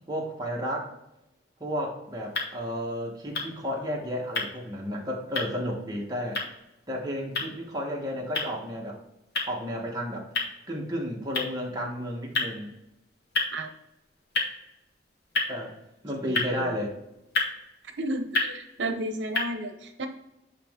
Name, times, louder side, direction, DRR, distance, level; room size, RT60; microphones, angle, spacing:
voice 1, 0.1-0.9 1.6-6.4 6.9-9.0 9.5-10.3 10.7-12.7 15.5-15.8 16.0-16.9, equal, 20° right, -2 dB, 1.2 m, -32 dB
sound 1, 2.1-19.4, left 3 dB, 60° left, 1.2 m, -35 dB
voice 2, 16.2-16.8 18.0-20.1, right 1 dB, 80° right, 7 dB, 0.8 m, -33 dB
8.5 x 3.1 x 3.6 m, 0.90 s
head